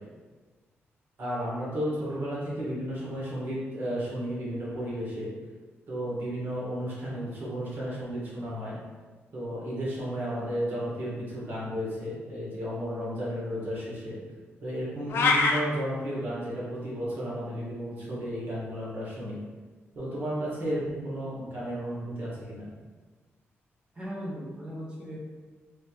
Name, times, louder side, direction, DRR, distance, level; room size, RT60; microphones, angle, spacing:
voice 1, 1.2-5.3 5.9-8.8 9.3-14.2 14.6-19.4 19.9-22.7, equal, 50° right, -7 dB, 1.4 m, -33 dB
sound 1, 15.1-15.6, left 3 dB, 60° left, 0.3 m, -22 dB
voice 2, 23.9-25.2, equal, 20° right, -6 dB, 0.7 m, -37 dB
3.3 x 2.8 x 2.9 m, 1.4 s
wide cardioid pair, 150°, 5 cm